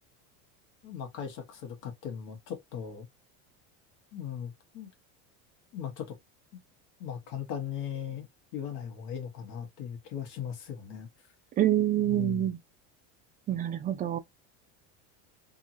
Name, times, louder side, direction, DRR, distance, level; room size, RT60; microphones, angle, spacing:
voice 1, 0.8-3.1 4.1-4.9 5.7-6.2 6.5-6.6 7.0-8.3 8.5-11.1 12.0-12.5, left 8 dB, 55° left, 1.2 m, -38 dB
voice 2, 11.6-12.6 13.5-14.2, right 12 dB, 25° right, 0.4 m, -26 dB
2.9 x 2.7 x 2.5 m
cardioid pair, 145°, 38 cm